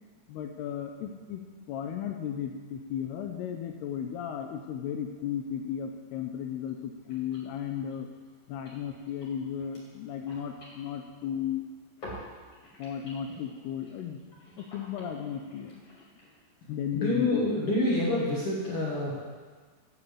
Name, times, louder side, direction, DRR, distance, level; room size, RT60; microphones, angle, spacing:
voice 1, 0.3-1.4 1.7-8.1 8.5-11.6 12.8-14.2 14.6-15.8 16.7-17.4, left 9 dB, 80° left, 5 dB, 2.4 m, -35 dB
sound 1, 6.4-6.5 6.7-6.8 7.0-11.6 11.9-16.3, left 1 dB, 40° left, 3.0 m, -50 dB
voice 2, 16.9-19.2, left 1 dB, 60° left, -6 dB, 1.4 m, -27 dB
8.4 x 6.7 x 7.4 m, 1.5 s
omnidirectional pair, 4.9 m